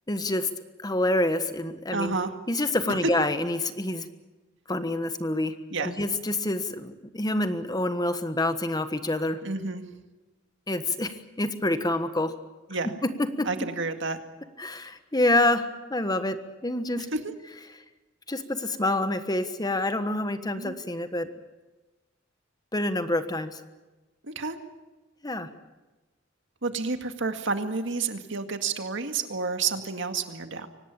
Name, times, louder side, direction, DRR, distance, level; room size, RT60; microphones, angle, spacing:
voice 1, 0.1-0.5 0.8-2.1 2.5-4.1 4.7-9.4 10.7-12.3 13.0-13.5 14.6-17.1 18.3-21.3 22.7-23.6 25.2-25.5, left 1 dB, 20° left, 10 dB, 1.3 m, -27 dB
voice 2, 1.9-2.3 5.7-6.0 9.4-9.8 12.7-12.9 13.5-14.2 17.0-17.2 20.6-20.8 24.2-24.6 26.6-30.7, right 4 dB, 70° right, 7 dB, 2.1 m, -30 dB
24.5 x 18.5 x 8.7 m, 1.1 s
head